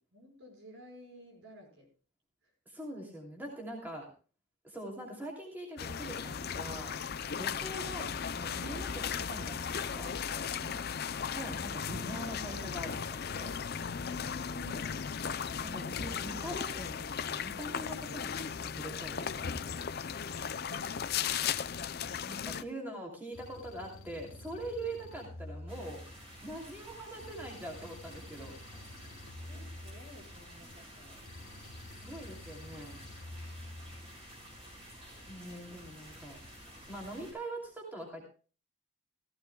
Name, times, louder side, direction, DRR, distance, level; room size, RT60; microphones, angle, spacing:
voice 1, 0.1-1.9 2.4-2.5 10.6-10.9 13.8-15.0 29.2-31.3 35.4-35.6, equal, 60° right, 3 dB, 5.1 m, -54 dB
voice 2, 2.7-4.1 4.6-6.9 7.3-10.2 11.3-13.5 15.6-19.9 22.2-26.0 26.4-28.6 32.0-33.0 35.3-36.4 36.9-38.2, right 1 dB, 10° right, -1 dB, 2.7 m, -43 dB
sound 1, 5.8-22.6, left 7 dB, 45° left, 0.5 m, -36 dB
sound 2, 23.3-26.4 27.2-30.5 31.3-34.1, left 1 dB, 80° left, 1.3 m, -48 dB
sound 3, 25.7-37.3, equal, 25° right, 6.0 m, -51 dB
17.5 x 15.0 x 2.3 m, 0.36 s
head